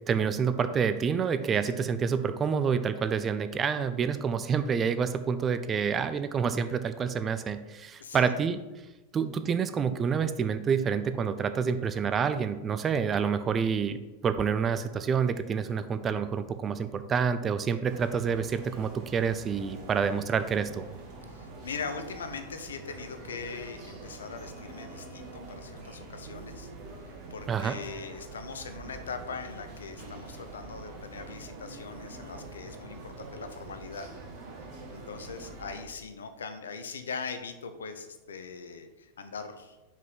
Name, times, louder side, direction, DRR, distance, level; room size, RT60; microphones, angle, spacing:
voice 1, 0.1-8.6 9.1-20.8 27.5-27.8, right 6 dB, 25° right, 10 dB, 0.5 m, -28 dB
voice 2, 8.0-8.3 21.3-26.7 27.3-34.1 34.9-39.8, left 5 dB, 75° left, 9 dB, 0.7 m, -41 dB
sound 1, 17.9-35.8, right 2 dB, 45° right, 2.0 m, -45 dB
5.4 x 5.1 x 5.6 m, 1.1 s
figure-of-eight pair, 90°, 0 cm